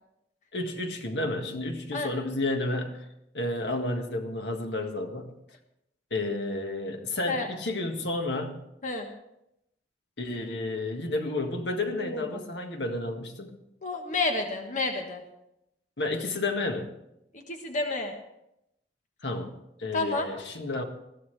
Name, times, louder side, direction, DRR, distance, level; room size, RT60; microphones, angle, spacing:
voice 1, 0.5-3.1 3.3-5.3 6.1-8.6 10.2-13.5 16.0-16.9 19.2-19.5 19.8-20.8, left 2 dB, 75° left, 4 dB, 1.8 m, -31 dB
voice 2, 12.0-12.4 13.8-15.2 17.3-18.1 19.9-20.3, left 3 dB, 45° left, 3 dB, 1.3 m, -30 dB
21.0 x 14.0 x 3.4 m, 0.81 s
head